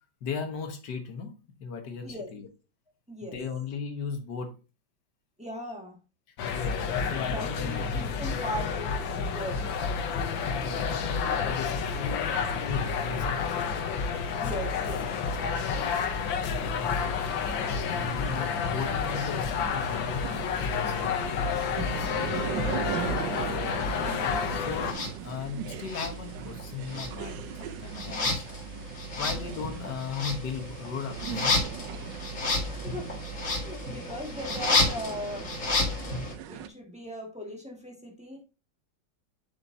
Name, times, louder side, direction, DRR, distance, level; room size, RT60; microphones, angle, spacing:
voice 1, 0.2-1.3 1.6-2.5 3.2-4.6 7.0-7.9 10.5-13.8 16.3-17.5 17.9-20.5 20.8-21.7 24.5-28.8 29.1-31.6, left 5 dB, 60° left, 5 dB, 1.8 m, -37 dB
voice 2, 5.4-6.0 7.2-9.7 14.4-15.1 22.0-22.9 28.0-28.3 29.2-29.4 32.6-33.1 33.5-35.5 36.5-38.4, equal, 5° right, 0 dB, 1.4 m, -39 dB
sound 1, 6.4-24.9, left 6 dB, 80° left, 1.6 m, -30 dB
sound 2, 16.8-36.7, right 8 dB, 75° right, 1.2 m, -39 dB
sound 3, 24.9-25.1 25.9-26.6 26.9-36.3, left 2 dB, 40° left, 2.0 m, -31 dB
7.6 x 5.9 x 2.7 m, 0.31 s
omnidirectional pair, 2.1 m